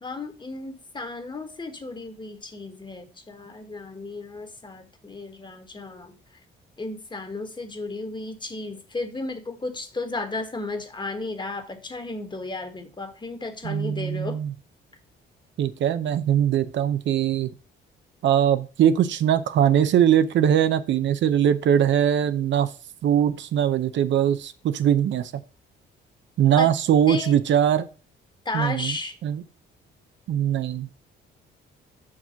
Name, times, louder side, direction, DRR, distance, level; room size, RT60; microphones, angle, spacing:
voice 1, 0.0-6.2 6.8-14.4 26.6-26.7 27.1-27.4 28.4-29.2, left 3 dB, 25° left, 8 dB, 1.4 m, -34 dB
voice 2, 13.6-14.5 15.6-17.5 18.2-22.7 23.0-25.3 26.4-27.9 28.5-29.0 29.2-29.4 30.3-30.9, right 9 dB, 70° right, 11 dB, 0.7 m, -21 dB
6.1 x 4.8 x 5.6 m, 0.36 s
cardioid pair, 90°, 20 cm